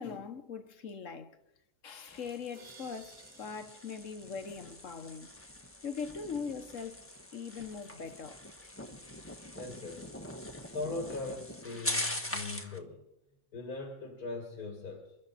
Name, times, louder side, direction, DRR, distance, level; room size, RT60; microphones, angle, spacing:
voice 1, 0.0-1.4 1.8-5.3 5.8-7.0 7.3-8.7, left 5 dB, 60° left, 1.5 m, -41 dB
sound 1, 2.1-12.8, left 1 dB, 10° left, 1.1 m, -42 dB
sound 2, 2.5-5.4, right 4 dB, 75° right, 2.1 m, -58 dB
voice 2, 9.6-10.2 10.7-13.1 13.5-15.2, left 3 dB, 85° left, 2.5 m, -40 dB
27.5 x 12.0 x 4.2 m
omnidirectional pair, 1.5 m